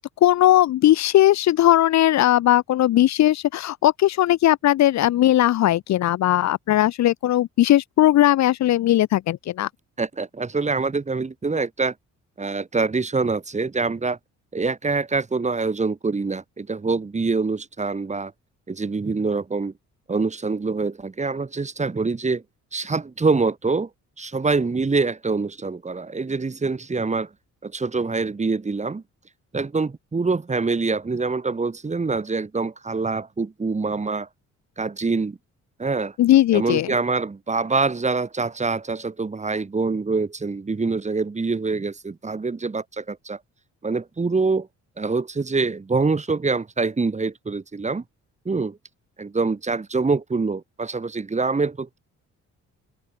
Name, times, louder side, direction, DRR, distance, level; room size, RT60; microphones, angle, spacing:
voice 1, 0.2-9.7 36.2-36.9, left 13 dB, 65° left, 0.7 m, -18 dB
voice 2, 10.0-11.9 12.4-14.2 14.5-18.3 18.7-19.7 20.1-22.4 22.7-23.9 24.2-27.3 27.6-29.0 29.5-34.3 34.8-35.4 35.8-36.2 36.5-43.4 43.8-44.7 45.0-48.0 48.5-48.8 49.2-52.0, right 4 dB, 25° right, 1.9 m, -25 dB
cardioid pair, 90°, 30 cm